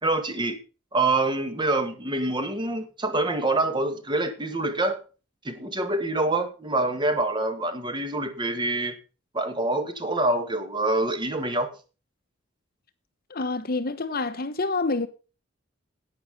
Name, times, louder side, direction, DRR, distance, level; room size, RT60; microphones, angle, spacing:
voice 1, 0.0-0.6 0.9-5.0 5.4-9.0 9.3-11.7, right 2 dB, 25° right, 1.8 m, -26 dB
voice 2, 13.3-15.1, left 3 dB, 50° left, 1.1 m, -27 dB
11.5 x 8.6 x 5.4 m
head